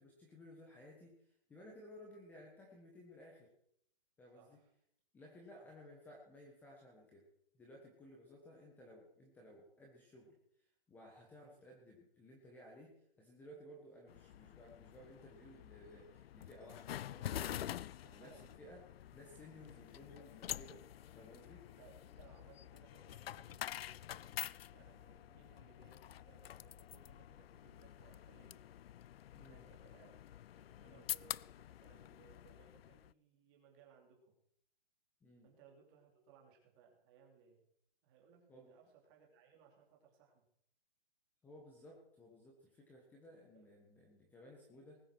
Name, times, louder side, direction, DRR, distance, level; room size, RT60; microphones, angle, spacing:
voice 1, 0.0-3.5 4.2-4.6 5.1-7.2 7.6-10.4 10.9-18.8 19.1-20.8 21.1-21.6 29.3-29.7 30.8-31.0 35.2-35.5 38.5-38.7 41.4-45.0, left 1 dB, 5° left, -1 dB, 1.4 m, -58 dB
voice 2, 4.3-4.7 5.5-5.8 18.0-18.4 21.7-24.4 24.7-28.6 29.5-30.2 30.5-34.4 35.4-37.6 38.0-40.5 43.5-43.7, right 6 dB, 25° right, 0 dB, 3.0 m, -65 dB
sound 1, 14.1-33.1, left 11 dB, 85° left, 0.4 m, -48 dB
19.5 x 7.7 x 6.1 m, 0.69 s
hypercardioid pair, 170°, 29 cm